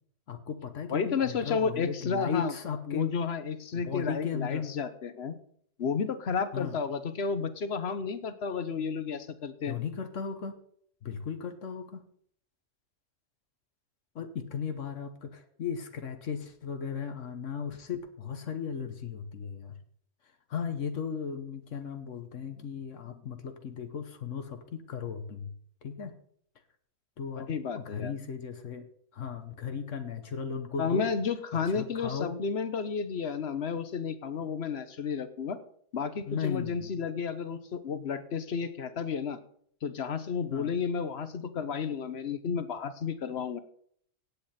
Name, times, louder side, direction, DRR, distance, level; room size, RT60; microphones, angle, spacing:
voice 1, 0.3-3.1 3.7-4.7 6.5-6.8 9.7-10.6 11.0-12.0 14.1-19.8 20.5-25.5 25.8-26.1 27.2-27.5 27.7-28.9 29.1-31.1 31.7-32.4 36.3-37.0 40.5-40.7, left 6 dB, 75° left, 8 dB, 1.4 m, -36 dB
voice 2, 0.9-2.5 2.9-5.4 5.8-9.8 27.4-28.1 30.8-35.6 35.9-39.4 39.8-43.6, left 6 dB, 55° left, 12 dB, 1.2 m, -32 dB
16.5 x 8.5 x 4.3 m, 0.64 s
omnidirectional pair, 1.3 m